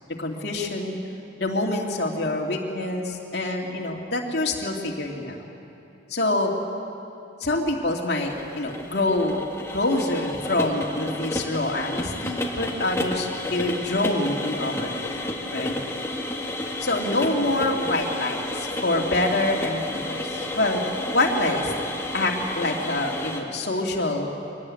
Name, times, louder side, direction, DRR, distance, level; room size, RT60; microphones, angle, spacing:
voice 1, 0.2-1.0 1.4-5.4 6.1-6.5 7.4-9.4 9.7-15.2 15.5-15.7 16.8-20.8 21.1-21.7 22.1-24.3, left 2 dB, 55° left, 0 dB, 2.6 m, -26 dB
sound 1, 8.2-23.4, left 1 dB, 15° left, 1.5 m, -31 dB
23.5 x 18.0 x 8.5 m, 2.7 s
head